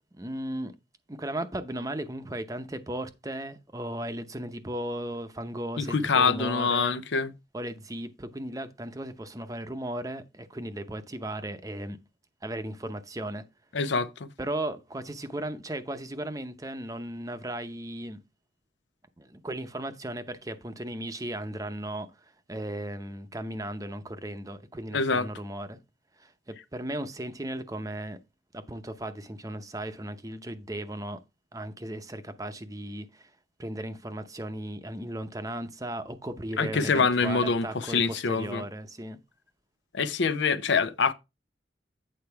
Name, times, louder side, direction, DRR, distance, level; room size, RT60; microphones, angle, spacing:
voice 1, 0.1-0.7 1.1-6.9 7.5-12.0 12.4-13.4 14.4-18.2 19.2-22.1 22.5-25.8 26.2-28.2 28.5-31.2 31.5-33.3 33.6-39.2, right 1 dB, 20° right, 0.7 m, -36 dB
voice 2, 5.8-7.3 13.7-14.3 24.9-25.3 36.6-38.6 39.9-41.1, left 4 dB, 75° left, 0.6 m, -25 dB
8.8 x 4.5 x 4.6 m
head